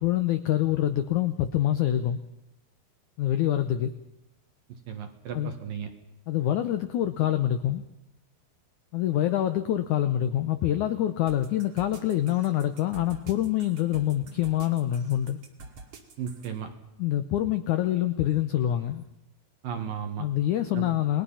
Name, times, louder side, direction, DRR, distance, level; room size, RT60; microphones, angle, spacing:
voice 1, 0.0-2.2 3.2-3.9 5.3-5.5 6.3-7.8 8.9-15.4 17.0-19.0 20.2-21.2, left 12 dB, 75° left, 9 dB, 1.9 m, -26 dB
voice 2, 4.9-5.9 16.2-16.7 19.6-20.3 20.7-20.9, right 8 dB, 65° right, 5 dB, 3.2 m, -34 dB
sound 1, 11.3-16.5, right 3 dB, 45° right, 2.9 m, -46 dB
29.5 x 20.5 x 5.7 m, 0.86 s
omnidirectional pair, 4.5 m